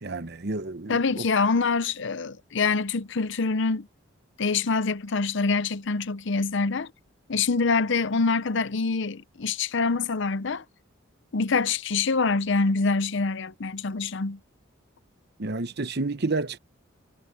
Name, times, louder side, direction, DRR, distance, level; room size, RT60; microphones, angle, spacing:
voice 1, 0.0-1.2 15.4-16.6, right 3 dB, 55° right, 1.0 m, -30 dB
voice 2, 0.9-3.9 4.4-6.9 7.3-10.6 11.3-14.4, left 4 dB, 65° left, 0.7 m, -25 dB
head